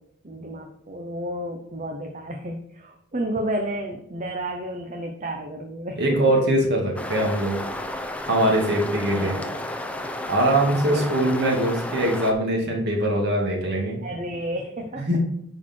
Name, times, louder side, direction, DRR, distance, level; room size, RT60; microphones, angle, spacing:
voice 1, 0.2-6.2 9.2-9.5 10.9-11.2 14.0-15.1, right 1 dB, 35° right, 3 dB, 0.8 m, -31 dB
voice 2, 6.0-7.6 8.3-9.4 10.3-14.0 15.0-15.2, right 1 dB, 50° right, -1 dB, 2.2 m, -22 dB
sound 1, 7.0-12.3, left 1 dB, 5° left, 0.5 m, -32 dB
10.5 x 4.4 x 4.4 m, 0.78 s
head